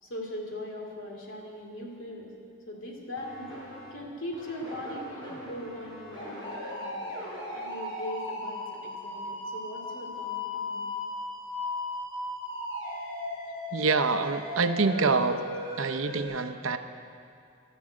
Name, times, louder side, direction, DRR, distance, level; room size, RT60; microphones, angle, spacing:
voice 1, 0.0-2.3 2.7-3.6 3.9-7.2 7.5-10.9, left 1 dB, 70° left, -1 dB, 2.6 m, -40 dB
sound 1, 3.2-3.9 4.3-16.2, left 1 dB, 20° left, 3.8 m, -37 dB
voice 2, 13.7-15.4 15.8-16.8, right 4 dB, 80° right, 9 dB, 0.7 m, -26 dB
11.5 x 11.5 x 8.6 m, 2.5 s
head